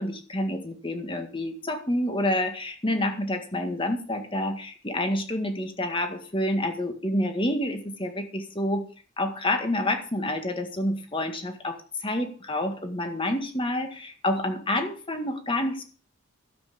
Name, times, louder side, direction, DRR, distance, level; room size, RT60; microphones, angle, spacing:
voice 1, 0.0-8.9 9.2-15.8, left 1 dB, 25° left, 6 dB, 1.8 m, -28 dB
12.0 x 8.3 x 7.0 m, 0.41 s
head